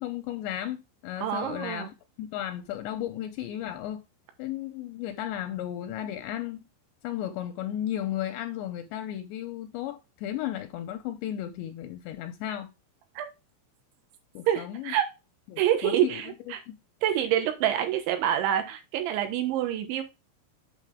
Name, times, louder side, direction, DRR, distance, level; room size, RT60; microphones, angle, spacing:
voice 1, 0.0-4.0 4.4-6.7 7.0-12.7 14.3-14.9 15.5-16.7, left 12 dB, 80° left, 2.7 m, -34 dB
voice 2, 1.2-1.9 13.2-13.3 14.5-15.1 15.6-16.6 17.0-20.0, right 11 dB, 80° right, 3.5 m, -27 dB
8.3 x 6.1 x 3.5 m
omnidirectional pair, 5.5 m